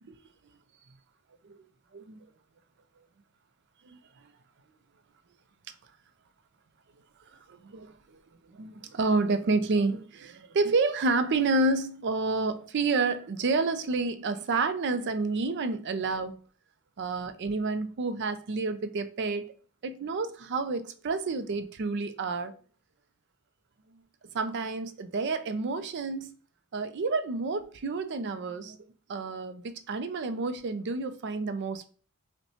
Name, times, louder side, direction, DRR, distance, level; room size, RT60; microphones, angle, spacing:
voice 1, 1.9-2.2 3.8-4.0 7.3-8.2 8.5-16.4 17.0-19.5 19.8-22.5 23.9-24.0 24.3-26.3 26.7-28.8 29.1-31.9, right 3 dB, 50° right, 0.4 m, -29 dB
5.4 x 2.2 x 2.8 m
head